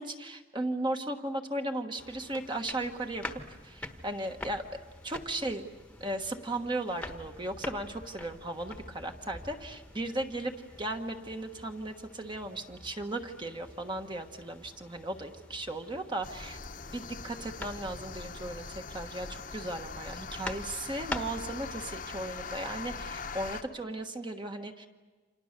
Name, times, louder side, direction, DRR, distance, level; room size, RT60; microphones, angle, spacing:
voice 1, 0.0-5.6 6.0-10.5 10.8-16.6 16.9-18.6 18.9-24.9, right 1 dB, 25° right, 5 dB, 1.4 m, -36 dB
sound 1, 2.0-21.9, left 1 dB, 5° left, 1.3 m, -46 dB
sound 2, 16.2-23.6, left 4 dB, 45° left, 1.1 m, -42 dB
29.5 x 26.5 x 6.7 m, 1.4 s
head